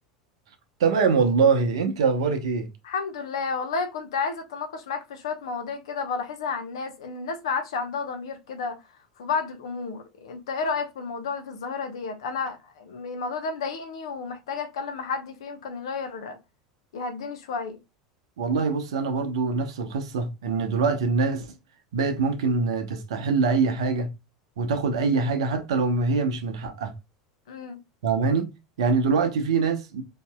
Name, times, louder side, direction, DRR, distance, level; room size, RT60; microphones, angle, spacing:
voice 1, 0.8-2.7 18.4-21.5 21.9-24.1 24.6-26.9 28.0-30.0, right 4 dB, 70° right, 0.7 m, -24 dB
voice 2, 2.8-8.8 9.2-16.4 16.9-17.8 27.5-27.8, left 5 dB, 70° left, 0.8 m, -31 dB
4.5 x 2.8 x 2.2 m
figure-of-eight pair, 80°, 3 cm